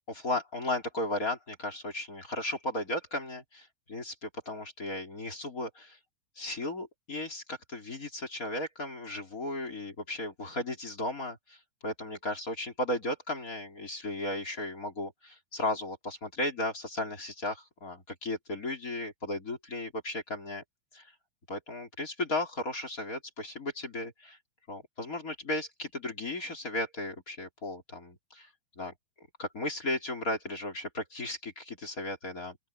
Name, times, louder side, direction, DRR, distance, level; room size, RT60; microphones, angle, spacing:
voice 1, 0.1-6.0 6.4-11.6 11.8-20.6 20.9-21.1 21.5-24.4 24.7-28.5 28.8-28.9 29.4-32.6, left 1 dB, 20° left, 3.2 m, -35 dB
open air
omnidirectional pair, 5.0 m